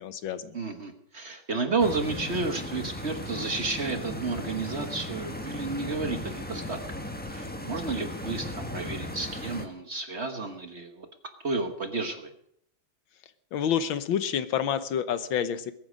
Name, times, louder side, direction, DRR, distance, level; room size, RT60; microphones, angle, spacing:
voice 1, 0.0-0.6 13.5-15.7, left 8 dB, 80° left, 12 dB, 1.7 m, -28 dB
voice 2, 0.5-6.8 7.3-11.1 11.4-12.3, right 3 dB, 40° right, 6 dB, 1.3 m, -31 dB
Stream, 1.8-9.7, left 1 dB, 5° left, 1.1 m, -37 dB
22.0 x 9.6 x 5.1 m, 0.70 s
omnidirectional pair, 2.2 m